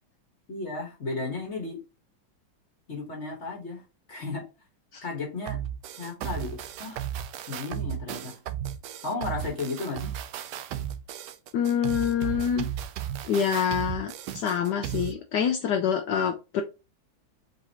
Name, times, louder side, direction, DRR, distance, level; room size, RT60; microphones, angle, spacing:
voice 1, 0.5-1.8 2.9-3.8 4.1-4.4 5.0-5.6 6.0-7.0 7.5-8.4 9.0-10.1, left 3 dB, 40° left, 1.5 m, -34 dB
sound 1, 5.5-15.1, right 10 dB, 75° right, 1.1 m, -35 dB
voice 2, 11.5-12.7 13.3-16.6, left 8 dB, 70° left, 1.2 m, -26 dB
4.8 x 3.9 x 2.9 m
omnidirectional pair, 2.1 m